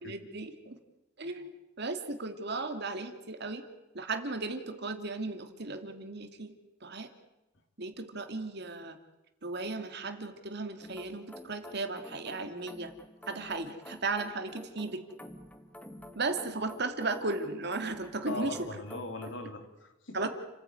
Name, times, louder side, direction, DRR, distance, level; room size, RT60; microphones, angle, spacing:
voice 1, 0.0-0.8 1.2-1.5 1.8-3.6 3.9-6.5 6.8-7.1 7.8-9.0 9.4-12.9 13.3-15.0 16.1-18.7 20.1-20.3, right 3 dB, 60° right, 7 dB, 2.5 m, -35 dB
sound 1, 10.8-19.5, left 1 dB, 10° left, 1.6 m, -50 dB
voice 2, 18.3-20.2, left 2 dB, 65° left, 5 dB, 3.5 m, -39 dB
30.0 x 15.5 x 9.4 m, 1.0 s
head